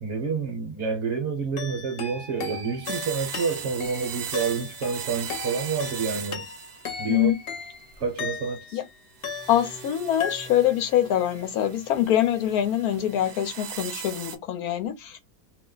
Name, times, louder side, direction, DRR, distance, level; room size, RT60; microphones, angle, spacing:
voice 1, 0.0-6.5 7.0-7.3 8.0-8.8, right 5 dB, 50° right, 1.0 m, -29 dB
sound 1, 1.6-8.8 9.2-9.9 10.2-10.8, left 5 dB, 50° left, 0.7 m, -37 dB
sound 2, 2.8-7.2 7.7-8.3 9.2-14.4, right 8 dB, 80° right, 0.5 m, -39 dB
voice 2, 7.1-7.4 8.7-8.9 9.5-15.2, left 11 dB, 70° left, 1.1 m, -24 dB
2.8 x 2.1 x 3.8 m
omnidirectional pair, 1.7 m